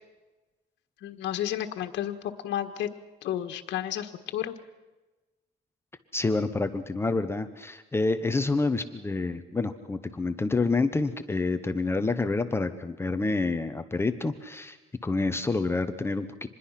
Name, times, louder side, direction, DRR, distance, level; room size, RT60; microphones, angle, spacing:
voice 1, 1.0-2.9 3.2-4.5, left 11 dB, 80° left, 6 dB, 1.6 m, -32 dB
voice 2, 6.1-14.8 15.0-16.5, left 3 dB, 15° left, 9 dB, 0.8 m, -28 dB
26.0 x 21.0 x 5.8 m, 1.1 s
cardioid pair, 165°, 18 cm